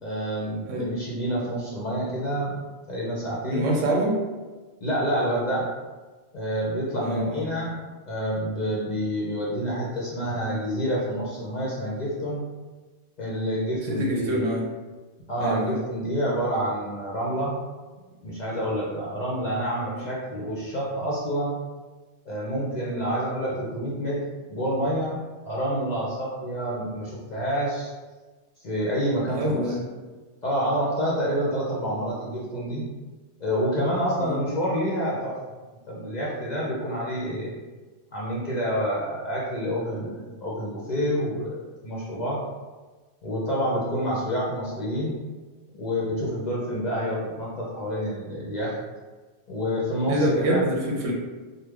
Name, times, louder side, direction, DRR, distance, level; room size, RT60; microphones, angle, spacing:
voice 1, 0.0-2.6 2.9-3.7 4.8-5.7 6.3-7.8 8.1-12.4 13.2-14.4 15.3-17.6 18.2-21.5 22.3-24.2 24.5-25.2 25.4-27.9 28.6-29.7 30.4-32.9 33.4-35.4 35.9-37.5 38.1-42.4 43.2-45.2 45.7-48.7 49.5-50.6, equal, 50° left, -6 dB, 0.6 m, -28 dB
voice 2, 3.4-4.2 7.0-7.5 13.9-14.7 15.4-15.8 29.3-29.8 34.2-34.4 50.1-51.1, right 1 dB, 80° right, -1 dB, 1.1 m, -25 dB
3.3 x 2.0 x 3.3 m, 1.3 s
omnidirectional pair, 1.3 m